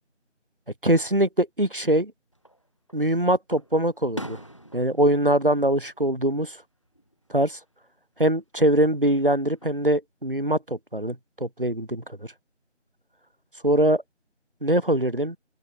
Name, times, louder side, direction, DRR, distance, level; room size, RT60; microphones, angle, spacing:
voice 1, 0.8-2.1 2.9-4.4 4.7-6.6 7.3-7.6 8.2-12.0 13.6-14.0 14.6-15.4, right 1 dB, 45° right, 1.0 m, -22 dB
Fireworks, 2.3-3.0 3.5-6.6 6.9-7.5 9.0-9.9, right 1 dB, 25° left, 2.6 m, -42 dB
figure-of-eight pair, 175°, 36 cm